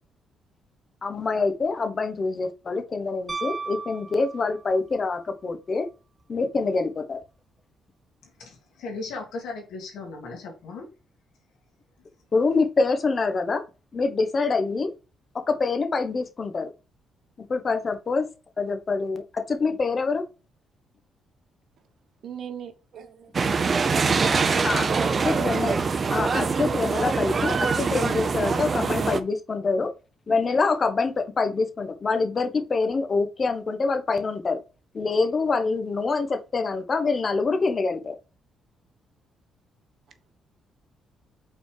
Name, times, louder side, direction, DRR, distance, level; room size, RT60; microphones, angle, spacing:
voice 1, 1.0-5.9 6.3-7.2 12.3-13.6 13.9-14.9 15.5-16.7 17.4-18.3 18.6-20.2 24.6-24.9 25.2-25.8 26.1-29.9 30.3-34.6 34.9-38.1, left 4 dB, 40° left, 1.2 m, -25 dB
Piano, 3.3-4.9 7.2-7.3, right 4 dB, 20° right, 1.0 m, -35 dB
voice 2, 8.2-10.9, left 3 dB, 80° left, 2.8 m, -37 dB
voice 3, 22.2-23.3, right 8 dB, 65° right, 1.1 m, -39 dB
sound 1, 23.3-29.2, right 5 dB, 40° right, 0.7 m, -24 dB
5.6 x 4.3 x 4.9 m
cardioid pair, 90°, 0 cm